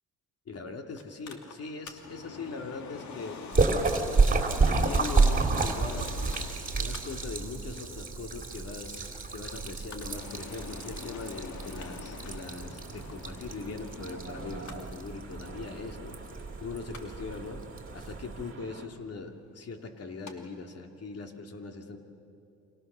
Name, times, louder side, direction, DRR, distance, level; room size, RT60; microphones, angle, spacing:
voice 1, 0.5-3.4 4.6-6.1 6.7-16.2 16.6-17.6 17.9-22.0, left 4 dB, 55° left, 4 dB, 2.9 m, -40 dB
Mechanical fan, 1.0-20.3 20.7-20.8, left 5 dB, 70° left, 2.7 m, -47 dB
Splash splatter, 3.5-18.5, right 4 dB, 25° right, 3.4 m, -30 dB
sound 1, 12.4-18.9, right 4 dB, 45° right, 2.2 m, -47 dB
29.5 x 25.5 x 7.0 m, 2.7 s
cardioid pair, 90°, 30 cm